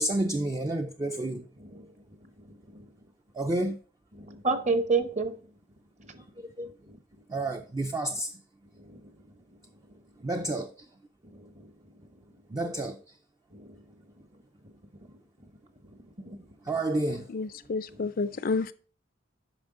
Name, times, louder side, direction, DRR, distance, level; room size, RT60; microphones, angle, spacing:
voice 1, 0.0-1.4 3.4-3.8 6.4-6.7 7.3-8.3 10.2-10.7 12.5-13.0 16.7-17.3, right 1 dB, 20° right, 0.4 m, -30 dB
voice 2, 4.1-5.3 6.9-7.0 8.9-9.0 11.3-11.5 13.5-13.8 16.2-16.4 18.0-18.1, right 4 dB, 35° right, 1.0 m, -29 dB
voice 3, 17.3-18.7, left 4 dB, 50° left, 0.4 m, -30 dB
8.8 x 5.8 x 3.7 m
head